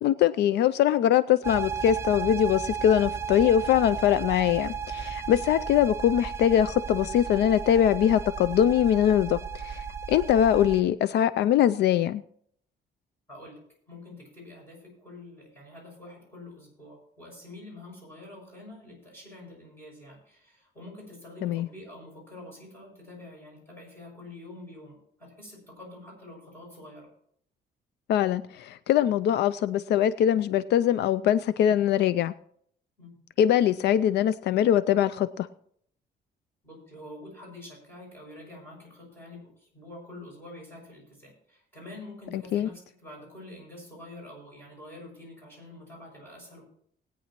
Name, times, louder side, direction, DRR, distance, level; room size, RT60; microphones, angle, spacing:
voice 1, 0.0-12.2 21.4-21.7 28.1-32.3 33.4-35.5 42.3-42.7, left 10 dB, 75° left, 15 dB, 0.4 m, -22 dB
sound 1, 1.4-10.8, right 6 dB, 15° right, 0.5 m, -34 dB
voice 2, 13.3-27.1 33.0-33.2 36.6-46.6, left 2 dB, 15° left, -3 dB, 6.3 m, -46 dB
19.5 x 9.3 x 2.9 m, 0.65 s
cardioid pair, 170°, 18 cm